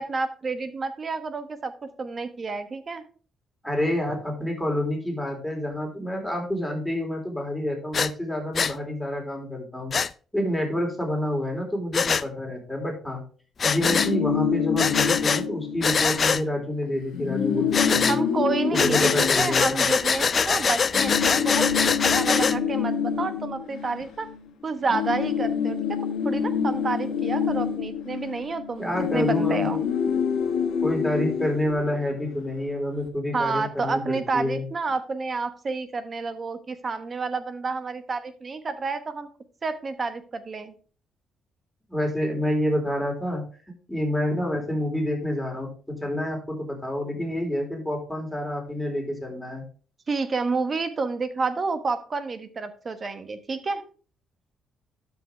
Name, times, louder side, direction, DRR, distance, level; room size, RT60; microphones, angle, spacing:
voice 1, 0.0-1.7 2.0-3.0 18.1-24.3 24.6-26.0 26.2-29.8 33.3-39.3 39.6-40.7 50.1-53.8, right 4 dB, 40° right, 11 dB, 1.1 m, -29 dB
voice 2, 3.6-9.9 10.3-13.2 13.6-18.2 18.7-19.9 28.8-29.8 30.8-34.6 41.9-43.4 43.9-45.7 46.0-49.6, left 1 dB, 5° left, 0 dB, 4.0 m, -28 dB
Breathing, 7.9-8.1 8.6-8.7 9.9-10.1 11.9-12.2 13.6-14.1 14.8-15.4 15.8-16.4 17.7-18.2 18.7-22.6, left 6 dB, 45° left, 0.4 m, -23 dB
sound 1, 13.7-16.3 16.6-16.7 17.0-20.4 20.9-24.5 24.7-32.4, left 7 dB, 85° left, 1.6 m, -27 dB
12.5 x 5.7 x 3.3 m, 0.40 s
cardioid pair, 90°, 0 cm